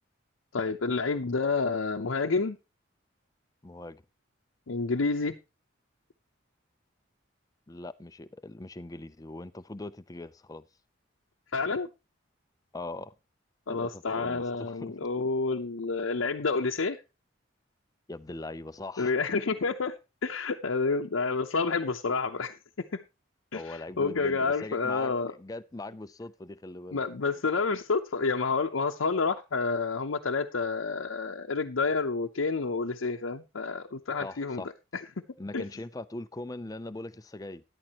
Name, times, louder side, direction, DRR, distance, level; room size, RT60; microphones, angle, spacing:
voice 1, 0.5-2.6 4.7-5.4 11.5-11.9 13.7-17.0 19.0-22.6 22.9-23.0 23.5-25.3 26.9-34.6 34.9-35.0 35.5-35.6, left 4 dB, 85° left, 0.7 m, -29 dB
voice 2, 3.6-4.0 7.7-10.6 12.7-13.1 13.7-14.9 18.1-19.1 23.5-27.0 34.2-34.7 35.4-37.6, left 2 dB, 20° left, 0.5 m, -41 dB
13.0 x 11.0 x 2.9 m
head